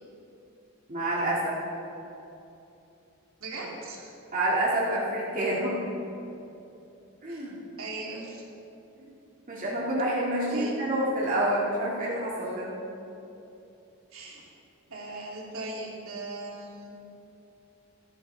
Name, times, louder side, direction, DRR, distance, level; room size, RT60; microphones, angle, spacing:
voice 1, 0.9-1.5 4.3-5.8 7.2-7.6 9.5-12.8, right 1 dB, 40° right, -6 dB, 2.2 m, -28 dB
voice 2, 3.4-4.1 5.4-5.7 7.3-7.5 7.8-8.4 10.5-10.7 14.1-14.5 14.9-17.0, right 2 dB, 70° right, -3 dB, 2.6 m, -39 dB
17.0 x 13.0 x 3.5 m, 2.9 s
head